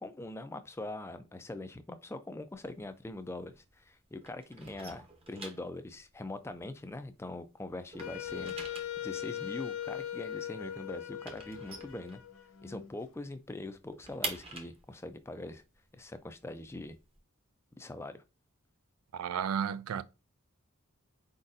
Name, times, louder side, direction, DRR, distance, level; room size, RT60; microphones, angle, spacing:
voice 1, 0.0-12.2 12.6-15.6 15.9-17.0 17.8-18.2, left 2 dB, 10° left, 0.3 m, -43 dB
sound 1, 2.5-3.9 4.2-7.4 7.7-12.7 13.1-13.2 13.5-17.2, right 3 dB, 25° right, 0.8 m, -45 dB
Wind instrument woodwind instrument, 8.0-12.9, left 10 dB, 85° left, 0.6 m, -40 dB
voice 2, 19.1-20.0, right 8 dB, 85° right, 0.4 m, -33 dB
4.5 x 4.0 x 2.5 m
head